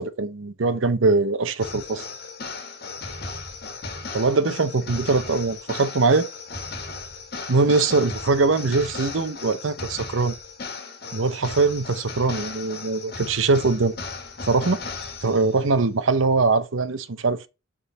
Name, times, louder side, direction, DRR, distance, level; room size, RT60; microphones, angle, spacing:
voice 1, 0.0-2.1 4.1-6.3 7.5-10.3 11.1-13.9 14.5-14.8 15.2-17.5, right 3 dB, 85° right, 0.7 m, -22 dB
sound 1, 1.6-15.7, left 4 dB, 55° left, 1.5 m, -36 dB
6.8 x 3.8 x 5.2 m
head